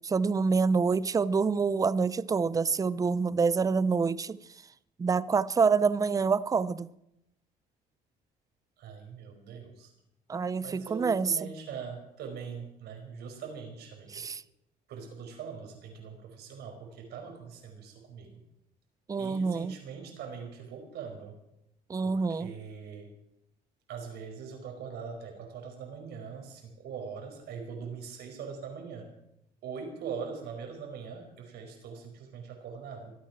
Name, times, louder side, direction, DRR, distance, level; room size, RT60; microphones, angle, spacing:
voice 1, 0.0-4.4 5.0-6.9 10.3-11.5 14.1-14.4 19.1-19.7 21.9-22.5, right 5 dB, 20° right, 0.5 m, -27 dB
voice 2, 8.8-9.9 10.6-14.2 14.9-18.4 19.2-21.4 22.0-23.1 23.9-29.1 29.6-33.1, right 6 dB, 75° right, 4.9 m, -42 dB
24.5 x 9.4 x 6.0 m
cardioid pair, 110°, 17 cm